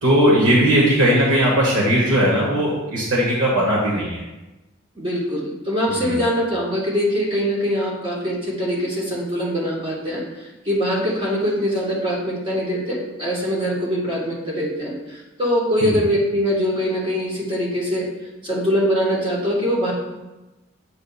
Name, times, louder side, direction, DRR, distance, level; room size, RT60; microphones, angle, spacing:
voice 1, 0.0-4.2 5.9-6.2 15.8-16.0, equal, 75° right, -4 dB, 1.2 m, -18 dB
voice 2, 4.9-18.1 18.4-19.9, equal, 25° right, -5 dB, 1.5 m, -23 dB
8.4 x 5.3 x 2.4 m, 1.1 s
head